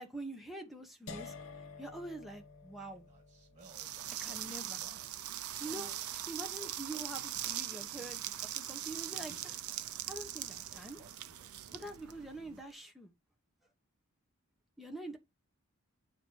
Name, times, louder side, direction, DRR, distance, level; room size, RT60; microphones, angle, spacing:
voice 1, 0.0-1.3 1.8-3.0 4.2-4.8 5.6-9.6 10.1-11.0 11.7-13.1 14.8-15.2, right 2 dB, ahead, 1.0 m, -45 dB
sound 1, 1.1-7.0, left 4 dB, 60° left, 0.9 m, -53 dB
sound 2, 2.9-5.3 5.6-6.2 6.6-8.3 8.9-10.1 10.7-12.6, right 1 dB, 30° right, 2.5 m, -59 dB
sound 3, 3.6-12.6, right 12 dB, 75° right, 0.6 m, -41 dB
8.2 x 3.0 x 4.6 m
head